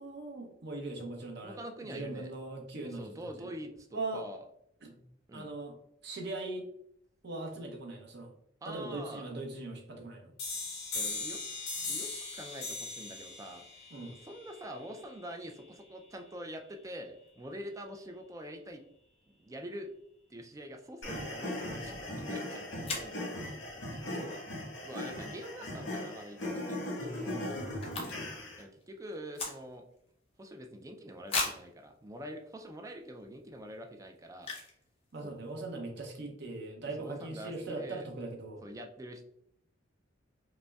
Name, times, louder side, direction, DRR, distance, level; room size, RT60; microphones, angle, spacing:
voice 1, 0.0-3.5 3.9-4.2 4.8-4.9 5.3-5.7 6.0-6.6 7.2-8.3 8.7-10.3 13.9-14.1 24.0-24.4 27.3-27.6 35.1-38.6, right 2 dB, 60° right, 2 dB, 0.8 m, -40 dB
voice 2, 1.4-2.3 2.8-4.5 5.3-5.5 8.6-9.3 10.9-11.4 11.9-18.8 19.3-19.9 20.3-23.6 23.9-24.4 24.8-27.8 28.6-29.8 30.4-34.5 35.2-35.4 37.0-38.1 38.6-39.2, equal, 15° right, 5 dB, 0.3 m, -45 dB
sound 1, 10.4-15.8, left 3 dB, 55° left, 1.5 m, -40 dB
sound 2, 21.0-28.6, left 1 dB, 75° left, 1.4 m, -38 dB
sound 3, 22.8-23.2 26.1-26.4 26.7-26.8 27.0-28.5 28.7-30.0 30.4-30.5 31.3-31.7 32.4-32.5 33.0-33.2 34.4-34.8 35.1-35.2 35.4-35.7, left 3 dB, 30° left, 0.8 m, -37 dB
5.0 x 2.1 x 2.3 m, 0.72 s
head